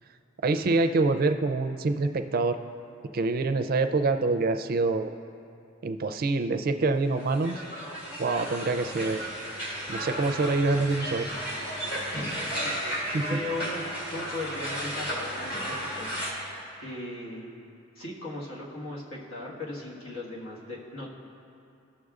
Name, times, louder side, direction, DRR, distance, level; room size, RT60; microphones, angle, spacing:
voice 1, 0.4-2.6 3.1-5.1 5.8-7.6 8.2-9.2 9.9-11.3 13.1-13.3, right 3 dB, 45° right, 8 dB, 0.4 m, -26 dB
sound 1, 7.1-16.3, equal, 45° left, 1.8 m, -34 dB
voice 2, 12.1-13.8 14.1-16.1 16.8-17.5 17.9-21.1, left 2 dB, 85° left, -5 dB, 1.5 m, -37 dB
15.5 x 6.4 x 2.4 m, 2.6 s
head